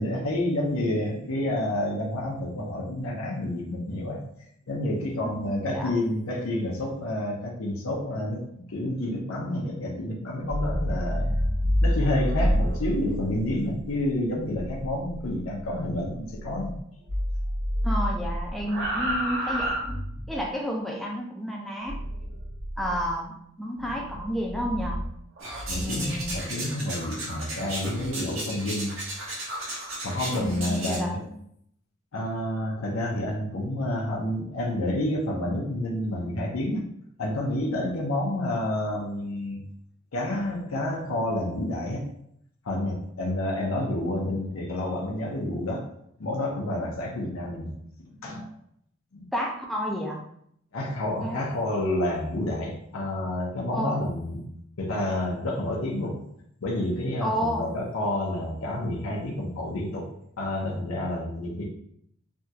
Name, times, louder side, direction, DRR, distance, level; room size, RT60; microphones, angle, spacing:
voice 1, 0.0-4.2 4.7-11.3 11.8-16.7 25.7-28.9 30.0-31.2 32.1-36.9 37.2-39.6 40.1-42.1 42.6-45.9 46.2-47.7 48.0-48.5 49.1-49.3 50.7-54.5 54.8-56.2 56.6-60.1 60.4-61.6, left 1 dB, 90° left, -2 dB, 0.7 m, -29 dB
voice 2, 5.2-5.9 17.8-20.0 20.3-22.0 22.8-25.0 25.8-26.3 30.4-31.4 49.3-50.3 51.2-51.4 53.7-53.9 57.2-57.7, equal, ahead, -1 dB, 0.4 m, -31 dB
sound 1, 10.3-16.8 17.1-20.5 21.9-23.1 23.8-26.4, equal, 55° right, 1.1 m, -29 dB
sound 2, 25.4-31.0, right 1 dB, 70° right, 1.1 m, -35 dB
3.4 x 2.3 x 2.7 m, 0.71 s
head